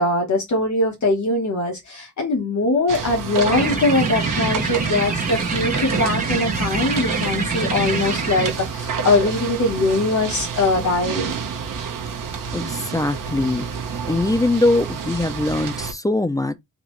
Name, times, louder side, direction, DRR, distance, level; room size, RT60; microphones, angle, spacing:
voice 1, 0.0-11.3, left 2 dB, 50° left, 1.3 m, -21 dB
sound 1, 2.9-15.9, right 6 dB, 55° right, 1.0 m, -29 dB
sound 2, 3.5-8.5, right 4 dB, 20° right, 1.0 m, -25 dB
voice 2, 12.5-13.7 14.1-16.5, left 2 dB, 10° left, 0.3 m, -21 dB
3.9 x 2.9 x 3.1 m
wide cardioid pair, 120°, 38 cm